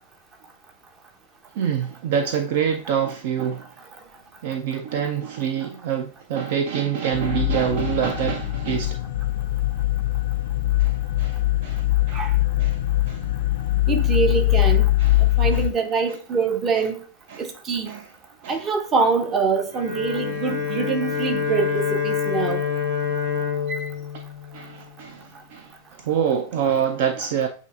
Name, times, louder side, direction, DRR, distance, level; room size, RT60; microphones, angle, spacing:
voice 1, 1.6-3.7 4.4-9.0 10.8-12.3 12.6-13.2 15.0-15.6 17.3-17.5 17.9-18.0 18.4-18.7 24.5-27.5, right 8 dB, 50° right, 0.4 m, -26 dB
sound 1, 7.1-15.7, left 16 dB, 60° left, 0.4 m, -22 dB
voice 2, 13.9-14.9 15.4-17.0 17.4-18.0 18.5-22.6 23.7-23.9, right 5 dB, 25° right, 0.7 m, -24 dB
Bowed string instrument, 19.7-25.2, left 7 dB, 70° right, 2.0 m, -27 dB
8.0 x 2.7 x 2.4 m
figure-of-eight pair, 90°, 0 cm